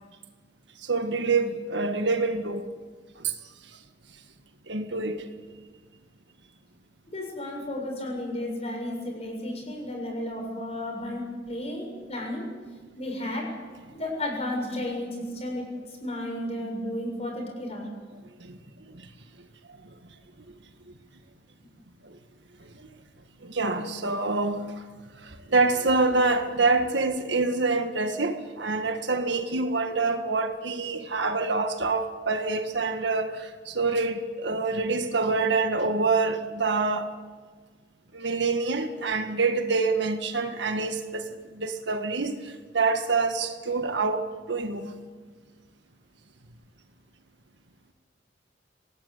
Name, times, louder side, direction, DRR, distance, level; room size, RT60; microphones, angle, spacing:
voice 1, 0.8-2.7 3.2-3.3 4.7-5.2 18.4-18.6 18.9-19.0 22.0-22.2 22.8-22.9 23.4-24.7 25.2-37.1 38.1-41.3 41.5-44.9, right 3 dB, 70° right, 6 dB, 1.8 m, -26 dB
voice 2, 7.1-12.5 13.0-13.4 13.9-15.6 16.0-17.9, left 1 dB, 35° left, 1 dB, 7.3 m, -33 dB
25.0 x 19.0 x 8.4 m, 1.5 s
head